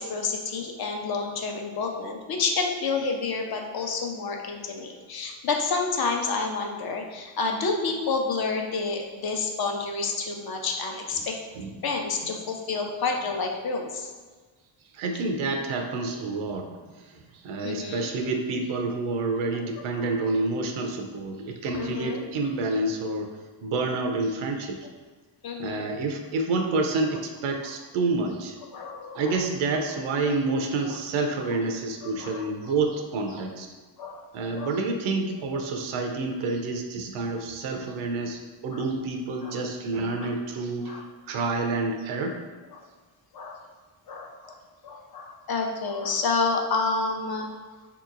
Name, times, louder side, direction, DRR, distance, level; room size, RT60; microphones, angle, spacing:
voice 1, 0.0-11.4 11.8-14.1 17.6-18.1 20.0-20.1 21.7-22.2 25.4-25.9 28.7-29.3 32.0-32.7 33.3-33.4 34.0-34.2 34.6-34.7 38.7-38.8 39.4-39.6 40.2-40.3 40.9-41.0 42.7-42.8 43.3-43.6 44.1-44.5 44.8-47.5, left 4 dB, 50° left, 2 dB, 0.7 m, -29 dB
voice 2, 14.9-23.3 23.6-24.9 25.6-28.6 29.1-33.7 34.3-42.4, right 3 dB, 90° right, 3 dB, 0.6 m, -28 dB
3.6 x 2.9 x 2.4 m, 1.4 s
cardioid pair, 60°, 47 cm